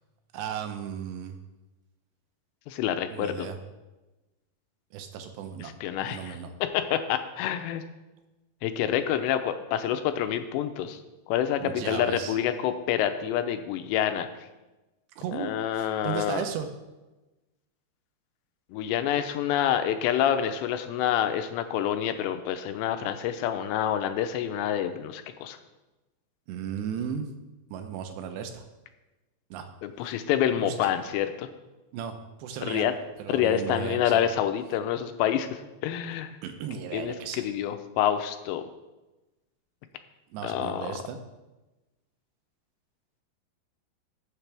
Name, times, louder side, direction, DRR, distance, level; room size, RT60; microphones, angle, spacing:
voice 1, 0.3-1.4 3.1-3.6 4.9-5.7 6.0-6.5 11.6-12.3 15.2-16.7 26.5-27.3 27.7-28.6 29.5-29.7 30.0-30.1 30.6-30.7 31.9-34.2 36.4-37.5 40.3-41.2, right 8 dB, 80° right, 6 dB, 3.0 m, -35 dB
voice 2, 2.7-3.5 5.6-7.8 8.6-11.0 11.3-14.3 15.3-16.5 18.7-25.6 29.8-31.5 32.6-32.9 33.3-36.4 36.9-38.6 40.4-40.9, left 10 dB, 85° left, 9 dB, 2.9 m, -27 dB
14.5 x 7.3 x 3.4 m, 1.1 s
omnidirectional pair, 5.0 m